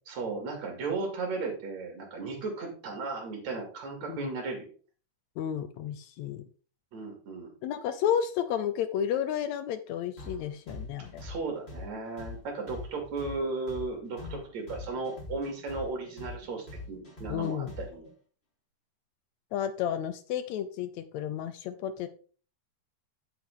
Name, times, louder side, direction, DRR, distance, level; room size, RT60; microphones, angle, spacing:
voice 1, 0.1-4.7 6.9-7.5 11.2-18.1, right 3 dB, 60° right, 2 dB, 3.7 m, -35 dB
voice 2, 5.4-6.4 7.6-11.2 14.2-14.4 17.3-17.7 19.5-22.1, left 9 dB, 75° left, 11 dB, 1.7 m, -32 dB
sound 1, 10.2-18.1, left 2 dB, 20° left, 3.8 m, -43 dB
8.6 x 7.6 x 3.6 m, 0.40 s
omnidirectional pair, 3.7 m